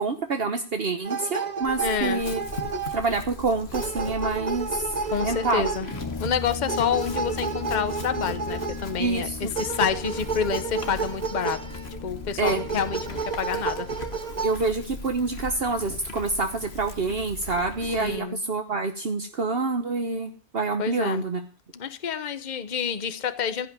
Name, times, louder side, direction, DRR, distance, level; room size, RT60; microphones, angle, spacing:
voice 1, 0.0-2.4 2.9-4.9 5.2-5.6 9.0-9.5 12.4-12.6 14.4-21.4, right 3 dB, 60° right, 6 dB, 1.3 m, -27 dB
sound 1, 1.1-3.4 3.7-6.1 6.7-9.0 9.6-12.0 12.5-14.5, right 5 dB, 40° right, 1.0 m, -31 dB
Chewing mastication / Livestock farm animals working animals, 1.6-18.2, left 4 dB, 65° left, 1.7 m, -40 dB
voice 2, 1.8-2.2 5.1-5.9 6.2-11.6 12.0-13.9 18.0-18.4 20.8-21.2 21.7-23.7, left 7 dB, 40° left, 11 dB, 1.0 m, -28 dB
Brass instrument, 5.9-13.4, left 4 dB, 25° left, 0.5 m, -38 dB
16.0 x 5.6 x 9.8 m, 0.39 s
omnidirectional pair, 1.2 m